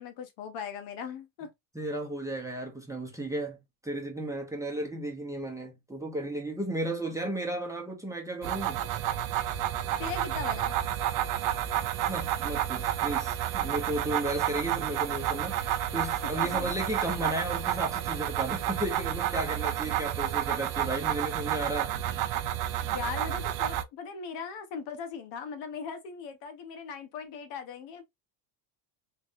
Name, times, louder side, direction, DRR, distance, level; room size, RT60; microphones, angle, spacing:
voice 1, 0.0-1.5 10.0-10.8 16.4-16.7 22.8-28.0, left 6 dB, 60° left, 1.1 m, -39 dB
voice 2, 1.7-3.6 3.8-8.8 12.0-22.0, right 1 dB, 5° right, 0.9 m, -34 dB
sound 1, 8.4-23.8, right 11 dB, 45° right, 0.5 m, -30 dB
3.4 x 3.1 x 2.6 m
cardioid pair, 125°, 50 cm